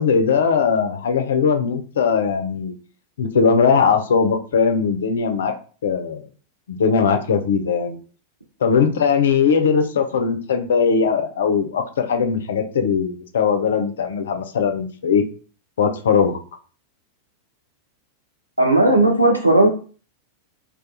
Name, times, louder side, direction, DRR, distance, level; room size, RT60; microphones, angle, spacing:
voice 1, 0.0-2.7 3.2-5.5 5.8-6.3 6.7-8.0 8.6-15.2 15.8-16.4, left 6 dB, 65° left, 7 dB, 0.3 m, -19 dB
voice 2, 18.6-19.7, right 1 dB, 85° right, 2 dB, 0.5 m, -15 dB
2.3 x 2.3 x 2.6 m, 0.39 s
figure-of-eight pair, 90°, 0 cm